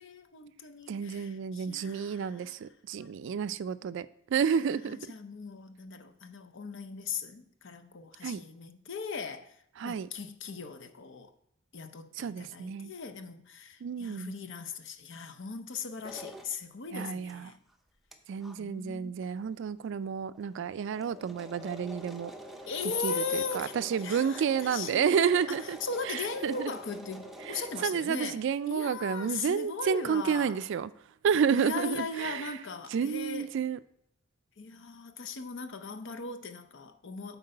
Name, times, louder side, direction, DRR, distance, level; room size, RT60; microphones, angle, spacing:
voice 1, 0.0-2.6 3.0-3.1 4.5-11.3 11.7-17.6 18.6-19.2 22.7-23.7 24.0-25.2 25.5-30.6 31.5-33.5 34.6-37.4, left 4 dB, 60° left, 0.7 m, -39 dB
voice 2, 0.9-5.0 8.2-8.4 9.8-10.1 12.2-12.9 13.8-14.3 16.9-17.5 18.3-22.3 23.0-25.8 26.0-26.7 27.5-30.9 31.2-32.6 32.9-33.8, right 7 dB, 60° right, 0.3 m, -30 dB
sound 1, 16.0-16.5 17.3-17.4 17.7-17.8 18.1-18.2 18.4-18.5 19.2-19.3 19.5-19.6 20.0-20.1 20.3-27.9, equal, ahead, 0.6 m, -46 dB
7.8 x 4.5 x 5.3 m
head